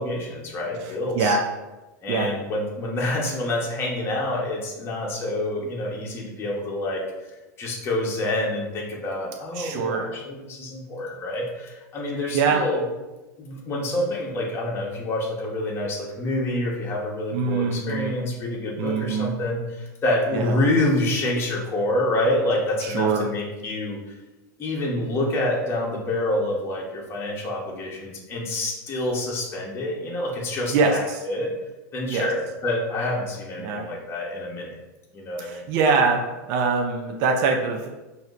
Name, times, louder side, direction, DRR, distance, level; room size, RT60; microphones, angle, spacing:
voice 1, 0.0-1.4 2.0-7.0 7.6-12.8 13.4-24.0 24.6-31.5 31.9-34.8 35.1-35.6, left 1 dB, 25° left, -3 dB, 1.0 m, -27 dB
voice 2, 0.8-1.4 2.1-2.3 9.5-10.0 12.3-12.6 17.3-18.1 18.8-19.3 20.3-20.6 22.8-23.2 30.7-31.2 32.1-32.3 33.6-33.9 35.4-37.9, right 4 dB, 50° right, 1 dB, 0.5 m, -23 dB
5.8 x 2.7 x 2.5 m, 1.1 s
supercardioid pair, 130°, 10 cm